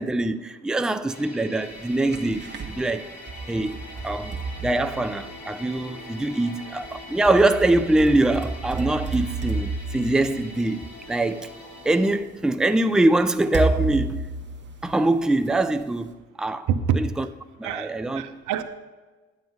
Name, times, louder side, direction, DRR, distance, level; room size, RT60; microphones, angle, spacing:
voice 1, 0.0-3.1 3.5-11.5 11.8-14.2 14.8-16.1 16.4-16.7 16.9-17.3 17.6-18.3, right 2 dB, ahead, 0.4 m, -23 dB
sound 1, 1.1-12.2, left 2 dB, 60° left, 2.3 m, -43 dB
sound 2, 1.8-2.7 3.3-5.7 6.8-11.2 12.1-12.2 13.5-15.4, right 4 dB, 35° right, 1.3 m, -31 dB
voice 2, 16.7-17.0 17.6-18.6, right 8 dB, 85° right, 0.9 m, -26 dB
10.5 x 7.7 x 5.6 m
cardioid pair, 90°, 30 cm